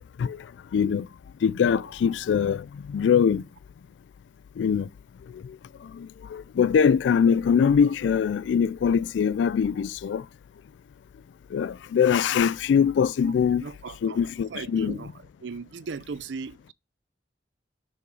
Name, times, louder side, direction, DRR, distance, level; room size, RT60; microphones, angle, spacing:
voice 1, 0.7-1.1 1.4-3.4 4.6-4.9 6.0-10.2 11.5-13.6 14.0-15.0, left 7 dB, 80° left, 0.3 m, -23 dB
voice 2, 13.6-15.1 15.4-16.7, right 5 dB, 80° right, 0.5 m, -38 dB
6.3 x 5.7 x 4.7 m
head